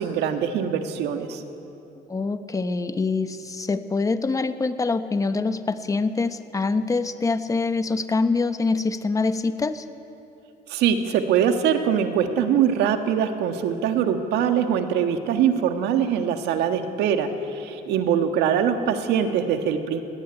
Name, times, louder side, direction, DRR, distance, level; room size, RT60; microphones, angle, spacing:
voice 1, 0.0-1.4 10.7-20.0, right 8 dB, 85° right, 6 dB, 1.6 m, -23 dB
voice 2, 2.1-9.8, left 3 dB, 20° left, 10 dB, 1.0 m, -25 dB
18.5 x 16.5 x 9.8 m, 2.9 s
cardioid pair, 110°, 17 cm